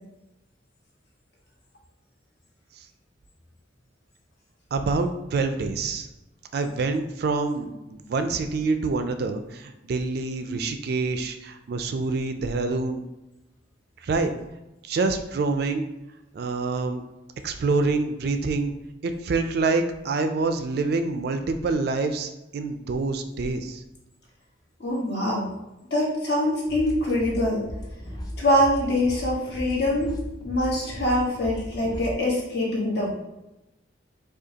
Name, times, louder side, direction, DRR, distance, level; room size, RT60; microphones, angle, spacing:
voice 1, 4.7-6.1 6.5-13.0 14.0-14.3 14.8-15.9 16.3-17.0 17.4-18.7 19.0-23.8, right 3 dB, 55° right, 8 dB, 0.3 m, -26 dB
voice 2, 24.8-25.5 25.9-27.6 28.4-30.1 30.4-33.1, left 1 dB, 60° left, -4 dB, 1.2 m, -24 dB
sound 1, 26.7-32.1, equal, 20° left, 0.4 m, -37 dB
4.9 x 2.3 x 2.8 m, 0.96 s
head